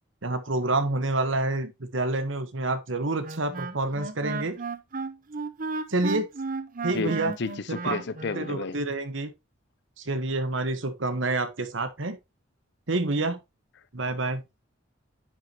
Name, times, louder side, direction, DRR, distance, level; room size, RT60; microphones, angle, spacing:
voice 1, 0.2-4.6 5.9-6.3 6.8-7.3 7.7-8.0 8.3-9.3 10.0-12.2 12.9-13.4 13.9-14.4, right 2 dB, 70° right, 1.3 m, -28 dB
Wind instrument woodwind instrument, 3.2-8.6, right 4 dB, 45° right, 0.8 m, -34 dB
voice 2, 6.9-8.8, left 4 dB, 60° left, 0.7 m, -32 dB
9.9 x 6.3 x 3.0 m
head